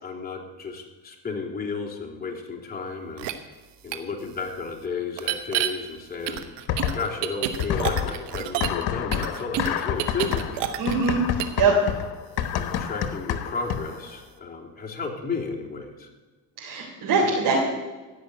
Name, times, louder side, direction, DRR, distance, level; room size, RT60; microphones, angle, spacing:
voice 1, 0.0-3.3 3.8-10.5 11.7-11.8 12.5-16.1, left 4 dB, 20° left, -2 dB, 3.2 m, -33 dB
sound 1, 3.2-3.3 3.9-4.0 5.2-5.7 6.3-8.8 9.1-11.1 11.4-11.6, right 12 dB, 80° right, 1.3 m, -28 dB
sound 2, 6.7-7.3 7.6-14.1, left 9 dB, 65° left, 1.3 m, -28 dB
voice 2, 10.8-11.2 11.6-11.7 16.6-17.6, right 4 dB, 65° right, -3 dB, 3.8 m, -22 dB
16.5 x 5.8 x 9.4 m, 1.2 s
cardioid pair, 100°, 42 cm